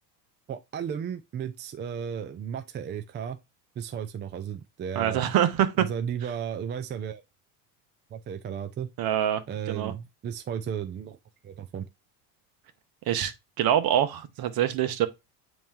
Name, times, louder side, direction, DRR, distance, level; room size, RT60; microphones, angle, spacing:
voice 1, 0.5-3.4 3.8-5.2 5.8-7.2 8.1-8.9 9.5-11.2 11.4-11.9, right 8 dB, 25° right, 0.4 m, -34 dB
voice 2, 4.9-5.9 9.0-9.4 9.7-9.9 13.1-13.3 13.6-15.1, right 11 dB, 50° right, 1.1 m, -24 dB
8.6 x 3.1 x 3.6 m
supercardioid pair, 105°, 47 cm